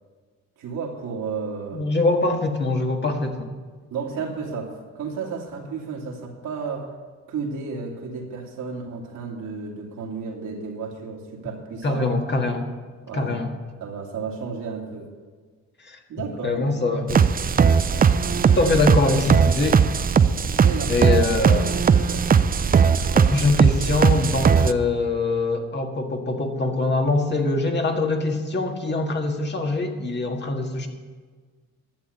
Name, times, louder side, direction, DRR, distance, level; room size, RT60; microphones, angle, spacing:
voice 1, 0.6-1.9 3.9-6.9 7.3-12.2 13.0-13.4 13.8-15.1 16.1-17.0 20.6-21.1 21.7-22.3, right 5 dB, 80° right, -1 dB, 2.7 m, -33 dB
voice 2, 1.7-3.5 11.8-12.7 13.1-13.5 15.8-16.0 16.4-17.2 18.2-19.9 20.9-21.7 23.1-30.9, left 2 dB, 35° left, 3 dB, 1.8 m, -23 dB
sound 1, 17.1-24.7, right 6 dB, 30° right, 0.5 m, -19 dB
12.0 x 7.3 x 8.3 m, 1.5 s
cardioid pair, 90°, 30 cm